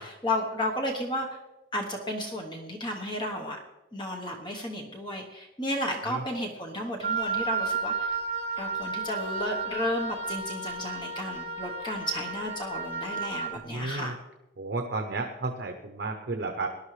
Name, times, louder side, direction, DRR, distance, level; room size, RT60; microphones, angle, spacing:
voice 1, 0.0-1.4 1.7-3.6 3.9-8.2 8.6-14.2, left 1 dB, 25° left, 1 dB, 1.1 m, -33 dB
Wind instrument woodwind instrument, 7.0-13.5, right 4 dB, 35° right, 1.2 m, -32 dB
voice 2, 13.6-14.1 14.6-16.7, right 3 dB, 65° right, 3 dB, 0.8 m, -32 dB
19.0 x 11.0 x 3.3 m, 1.0 s
head